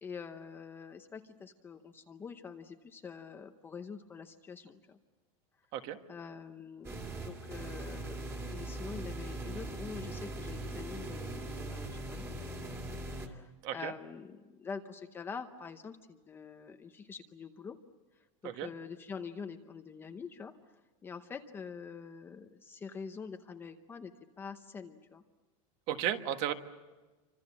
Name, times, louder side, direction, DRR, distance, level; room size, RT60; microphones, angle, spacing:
voice 1, 0.0-5.0 6.1-8.2 8.5-12.8 13.1-17.8 18.4-20.5 21.0-25.2, left 5 dB, 10° left, 7 dB, 0.8 m, -45 dB
sound 1, 6.8-13.3, right 2 dB, 15° right, 2.3 m, -40 dB
voice 2, 25.9-26.5, right 11 dB, 40° right, 8 dB, 1.5 m, -34 dB
28.5 x 25.5 x 7.4 m, 1.2 s
supercardioid pair, 175°, 18 cm